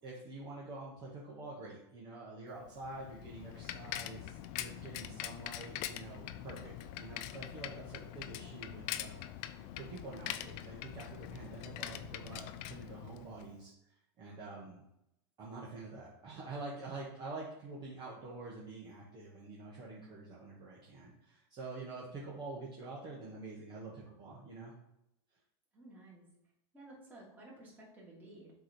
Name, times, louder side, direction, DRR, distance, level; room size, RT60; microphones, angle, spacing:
voice 1, 0.0-13.7 14.2-14.8 15.4-24.7, right 3 dB, 30° right, -5 dB, 1.4 m, -47 dB
Bicycle, 2.7-13.6, left 12 dB, 45° left, 0.4 m, -43 dB
voice 2, 25.7-26.3 26.7-28.5, right 2 dB, 10° right, -5 dB, 2.3 m, -54 dB
7.5 x 3.2 x 4.4 m, 0.82 s
supercardioid pair, 145°, 15 cm